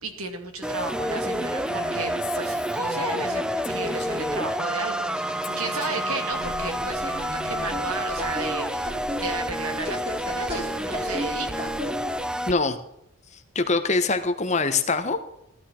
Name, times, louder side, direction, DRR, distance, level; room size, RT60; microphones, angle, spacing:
voice 1, 0.0-12.0, right 3 dB, 90° right, 5 dB, 2.5 m, -34 dB
sound 1, 0.6-12.5, equal, 5° right, 0.5 m, -29 dB
Female speech woman speaking, 1.2-4.5 5.4-7.7, left 4 dB, 50° left, 1.7 m, -40 dB
sound 2, 6.3-12.2, equal, 25° right, 4.6 m, -36 dB
voice 2, 12.5-12.8 13.5-15.3, left 3 dB, 30° left, 8 dB, 1.2 m, -23 dB
15.5 x 11.5 x 4.5 m, 0.77 s
head